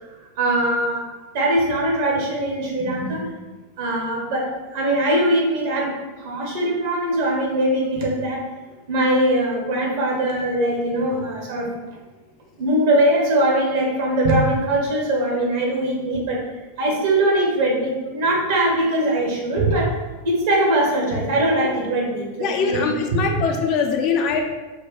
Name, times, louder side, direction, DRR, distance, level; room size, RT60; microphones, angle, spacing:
voice 1, 0.4-3.3 3.8-8.4 8.9-11.7 12.6-16.4 16.8-20.0 20.2-22.9, right 1 dB, 50° right, -2 dB, 1.0 m, -21 dB
voice 2, 22.4-24.4, left 5 dB, 40° left, 2 dB, 0.5 m, -22 dB
4.3 x 2.2 x 3.1 m, 1.2 s
figure-of-eight pair, 90°, 0 cm